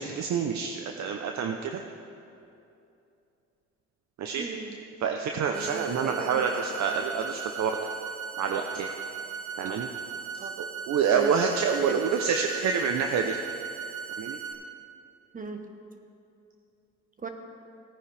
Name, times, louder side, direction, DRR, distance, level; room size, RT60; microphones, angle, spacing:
voice 1, 0.0-1.8 4.2-4.5 5.0-7.8 8.4-8.9 9.6-9.9 10.6-13.4 14.2-14.4, right 6 dB, 65° right, 4 dB, 0.7 m, -27 dB
voice 2, 4.4-4.8 5.5-6.5 9.6-9.8 10.4-10.5 11.1-11.3 11.8-12.0 15.3-15.6 17.2-17.3, right 4 dB, 25° right, 5 dB, 1.0 m, -38 dB
sound 1, 5.5-14.5, right 6 dB, 50° right, 1.3 m, -38 dB
16.5 x 10.0 x 3.4 m, 2.7 s
cardioid pair, 90°, 30 cm